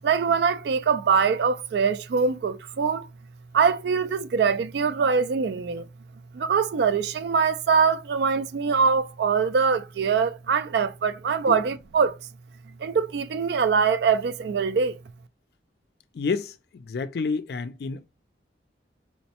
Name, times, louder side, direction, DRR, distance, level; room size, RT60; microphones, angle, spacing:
voice 1, 0.0-3.1 3.5-5.8 6.3-12.2 12.8-15.0, right 5 dB, 65° right, 0.3 m, -23 dB
voice 2, 16.1-18.1, left 4 dB, 60° left, 0.3 m, -29 dB
4.3 x 2.0 x 2.8 m
head